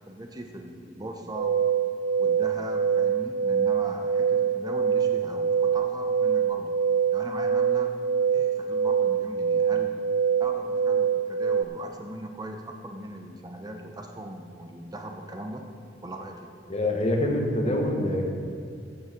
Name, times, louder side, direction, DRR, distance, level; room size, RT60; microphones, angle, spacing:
voice 1, 0.0-1.8 2.2-6.8 7.1-7.9 8.3-10.0 10.4-15.6 16.0-16.5, right 1 dB, 20° right, 3 dB, 0.9 m, -39 dB
sound 1, 1.3-11.6, right 7 dB, 65° right, 0.3 m, -24 dB
voice 2, 16.7-18.3, left 1 dB, 35° left, 1 dB, 1.6 m, -25 dB
14.5 x 7.2 x 5.3 m, 2.5 s
head